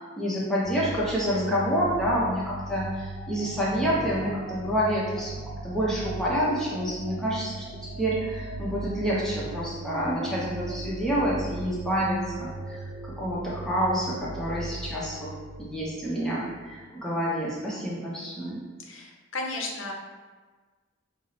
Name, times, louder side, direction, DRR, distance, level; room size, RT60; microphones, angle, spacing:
voice 1, 0.2-7.7 8.0-15.3 15.6-18.6, equal, 5° left, -7 dB, 0.7 m, -28 dB
sound 1, 0.6-17.0, right 2 dB, 80° right, 0.5 m, -38 dB
voice 2, 18.8-19.9, left 2 dB, 75° left, 0 dB, 0.6 m, -34 dB
5.4 x 2.0 x 2.8 m, 1.4 s
head